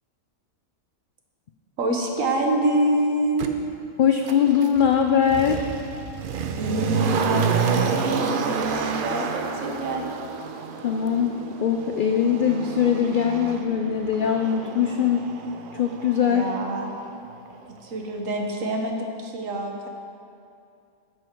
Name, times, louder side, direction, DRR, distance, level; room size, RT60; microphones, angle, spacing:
voice 1, 1.8-3.5 6.6-10.0 16.2-17.0 17.8-19.9, right 1 dB, 75° right, 2 dB, 1.5 m, -26 dB
Motor vehicle (road), 3.4-3.5 4.2-17.2 17.5-17.6, right 6 dB, 55° right, 0.6 m, -29 dB
voice 2, 4.0-5.7 10.8-11.3 11.6-15.2 15.7-16.5, left 8 dB, 80° left, 5 dB, 0.4 m, -21 dB
9.7 x 7.6 x 4.5 m, 2.5 s
omnidirectional pair, 1.4 m